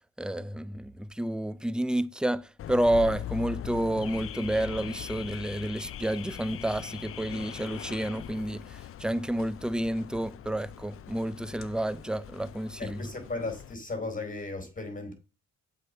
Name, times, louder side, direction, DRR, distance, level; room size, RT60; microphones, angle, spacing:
voice 1, 0.2-13.1, right 1 dB, 5° right, 0.6 m, -30 dB
Car / Alarm, 2.6-13.7, left 11 dB, 45° left, 0.5 m, -41 dB
voice 2, 12.8-15.1, left 3 dB, 25° left, 4.0 m, -36 dB
7.6 x 4.9 x 6.5 m
cardioid pair, 90°, 30 cm